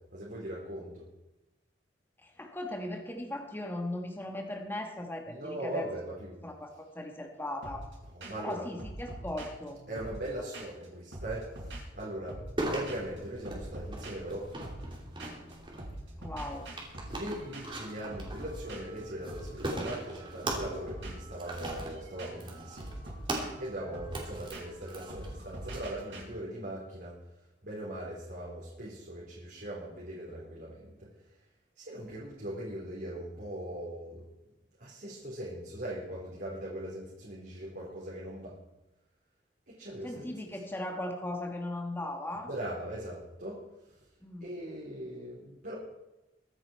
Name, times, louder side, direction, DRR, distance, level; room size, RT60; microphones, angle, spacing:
voice 1, 0.1-1.0 5.3-6.4 8.1-8.6 9.9-12.4 12.7-15.0 17.1-22.9 23.6-27.1 27.6-30.9 31.8-34.2 34.8-38.5 39.7-40.3 42.5-43.6 44.4-45.7, right 1 dB, 55° right, -7 dB, 3.8 m, -40 dB
voice 2, 2.2-5.9 6.4-7.9 8.4-9.8 16.2-16.7 40.0-42.5 44.2-44.5, left 1 dB, 10° left, 3 dB, 1.2 m, -38 dB
sound 1, 7.6-7.9 8.2-8.5 8.8-10.9 11.1-12.6 12.9-13.2 13.4-15.5 15.8-26.2, right 1 dB, 80° right, 6.1 m, -45 dB
sound 2, 12.6-25.8, right 1 dB, 30° right, 3.0 m, -40 dB
23.0 x 9.2 x 4.5 m, 1.0 s
head